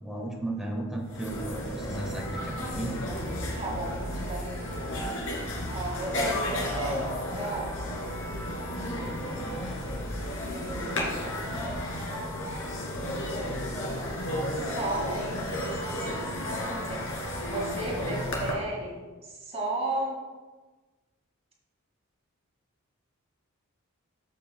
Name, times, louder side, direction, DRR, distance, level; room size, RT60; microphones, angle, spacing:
voice 1, 0.0-3.0, right 2 dB, ahead, -1 dB, 1.4 m, -35 dB
sound 1, 0.8-0.9 1.0-18.5, left 1 dB, 75° left, 2.3 m, -33 dB
voice 2, 3.6-4.9 5.7-7.8 10.5-11.2 14.5-20.2, right 2 dB, 30° right, -3 dB, 2.2 m, -35 dB
13.5 x 6.6 x 2.3 m, 1.3 s
head